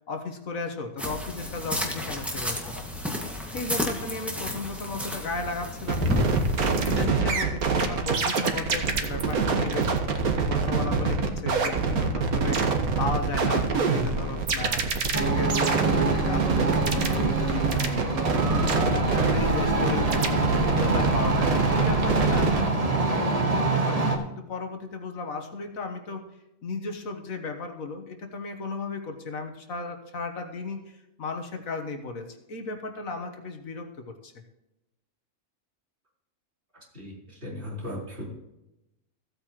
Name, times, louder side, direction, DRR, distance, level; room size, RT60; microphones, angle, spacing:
voice 1, 0.0-2.8 3.5-6.2 6.7-9.9 10.3-14.8 15.2-18.2 18.9-22.6 23.0-26.2 26.6-34.4, left 3 dB, 70° left, 5 dB, 1.7 m, -35 dB
sound 1, 1.0-7.0, left 1 dB, ahead, 1.7 m, -31 dB
sound 2, 5.9-22.6, right 4 dB, 85° right, 1.8 m, -26 dB
sound 3, 15.1-24.2, right 2 dB, 25° right, 1.4 m, -25 dB
voice 2, 37.4-38.3, left 1 dB, 45° right, -5 dB, 4.8 m, -36 dB
15.5 x 8.7 x 3.0 m, 0.90 s
omnidirectional pair, 1.5 m